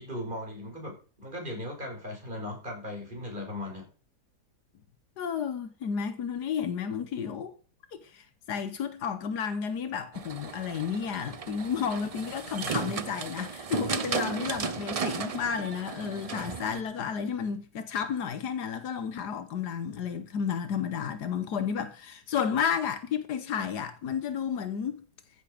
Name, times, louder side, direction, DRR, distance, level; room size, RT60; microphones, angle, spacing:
voice 1, 0.0-3.9, left 1 dB, 30° right, 5.0 m, -38 dB
voice 2, 5.2-7.5 8.0-25.0, left 7 dB, 85° left, 1.6 m, -32 dB
sound 1, 10.1-16.8, right 6 dB, 75° right, 0.3 m, -35 dB
14.5 x 7.4 x 5.1 m
omnidirectional pair, 1.7 m